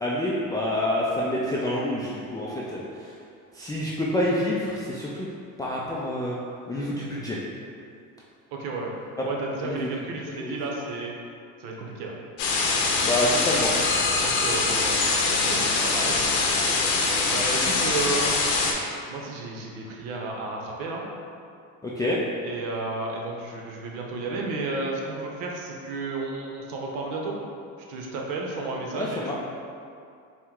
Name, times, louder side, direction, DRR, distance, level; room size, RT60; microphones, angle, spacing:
voice 1, 0.0-3.1 3.5-5.3 5.6-6.4 6.7-7.4 9.6-9.9 10.3-10.5 13.0-13.7 14.7-14.8 21.8-22.2 28.9-29.3, left 1 dB, 10° left, -6 dB, 0.3 m, -27 dB
voice 2, 8.5-8.9 9.2-11.1 11.6-12.1 14.2-15.0 15.3-16.2 17.3-18.3 19.1-21.0 22.4-27.4 27.9-29.3, right 3 dB, 80° right, -1 dB, 0.8 m, -32 dB
sound 1, 12.4-18.7, left 3 dB, 85° left, 0.7 m, -23 dB
4.3 x 2.1 x 3.7 m, 2.4 s
supercardioid pair, 90°, 38 cm